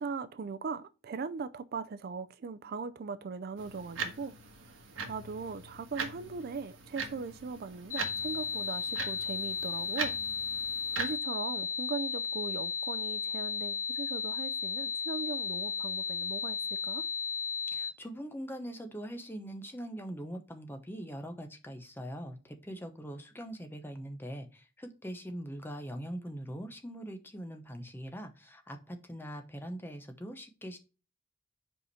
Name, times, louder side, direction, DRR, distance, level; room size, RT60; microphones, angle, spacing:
voice 1, 0.0-4.3 4.7-4.8 5.1-10.2 10.9-17.1, right 5 dB, 50° right, 0.4 m, -39 dB
sound 1, 3.6-11.2, right 5 dB, 80° right, 1.4 m, -41 dB
sound 2, 7.9-17.9, left 6 dB, 45° left, 1.2 m, -34 dB
voice 2, 17.7-30.8, equal, 10° left, 0.8 m, -42 dB
5.2 x 5.0 x 4.1 m
head